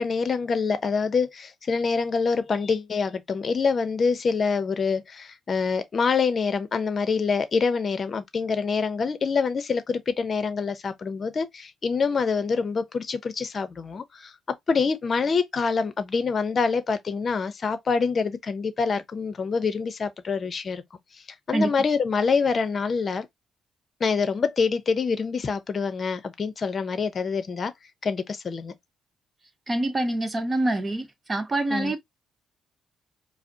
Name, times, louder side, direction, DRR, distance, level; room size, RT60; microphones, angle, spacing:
voice 1, 0.0-14.3 14.7-20.8 21.5-23.3 24.0-27.7 28.0-28.7 31.7-31.9, left 5 dB, 45° left, 0.7 m, -26 dB
voice 2, 29.7-32.0, right 2 dB, 25° right, 0.9 m, -26 dB
4.8 x 2.1 x 2.8 m
cardioid pair, 90°, 0 cm